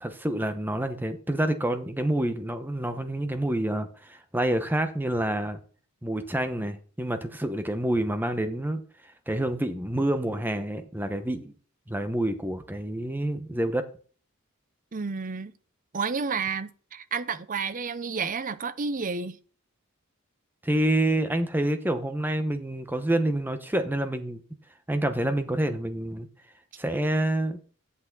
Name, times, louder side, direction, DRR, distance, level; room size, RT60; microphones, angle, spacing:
voice 1, 0.0-5.6 6.0-8.8 9.3-11.5 11.9-13.9 20.6-24.4 24.9-26.3 26.8-27.6, right 1 dB, 10° right, 0.9 m, -27 dB
voice 2, 14.9-15.5 15.9-19.4, right 5 dB, 40° right, 0.6 m, -31 dB
8.4 x 8.3 x 3.9 m
head